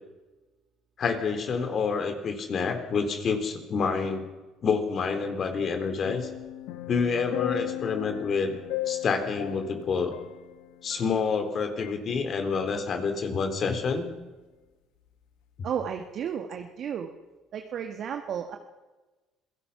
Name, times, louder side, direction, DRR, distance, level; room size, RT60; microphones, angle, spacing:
voice 1, 1.0-4.3 4.6-6.3 6.9-8.6 8.9-10.2 10.8-14.1, left 5 dB, 50° left, 6 dB, 4.0 m, -28 dB
sound 1, 6.0-11.5 11.8-12.0, left 15 dB, 75° left, 1.2 m, -37 dB
voice 2, 15.6-17.1 17.5-18.6, right 8 dB, 55° right, 4 dB, 1.7 m, -33 dB
27.0 x 17.0 x 5.9 m, 1.2 s
hypercardioid pair, 65°, 0 cm